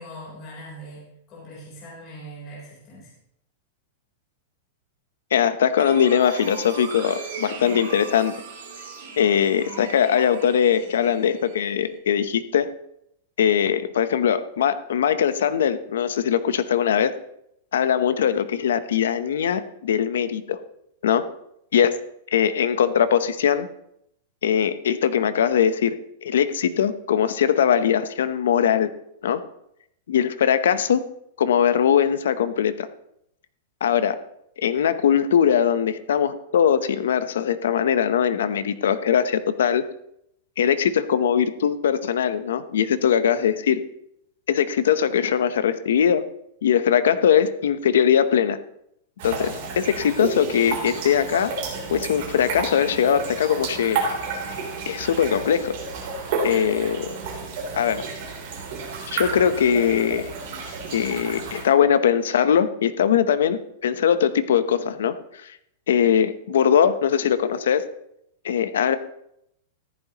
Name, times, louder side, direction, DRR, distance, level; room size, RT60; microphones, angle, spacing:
voice 1, 0.0-3.1, right 1 dB, 25° left, -5 dB, 3.6 m, -41 dB
voice 2, 5.3-8.4 9.2-12.7 13.4-17.1 17.7-20.6 21.0-21.2 21.7-22.0 22.3-23.7 24.4-26.0 26.2-28.9 29.2-29.4 30.1-31.0 31.4-32.9 33.8-34.2 34.6-39.8 40.6-43.8 44.5-46.2 46.6-48.6 49.2-51.5 51.9-54.0 54.9-55.7 56.4-57.1 57.8-58.1 59.1-60.6 60.9-65.1 65.4-65.5 65.9-67.9 68.4-69.0, left 8 dB, 85° left, 12 dB, 0.8 m, -21 dB
sound 1, 5.8-12.0, right 5 dB, 75° right, 3.9 m, -39 dB
sound 2, 49.2-61.6, right 4 dB, 40° right, 3.3 m, -31 dB
14.5 x 11.0 x 3.0 m, 0.75 s
supercardioid pair, 180°, 0 cm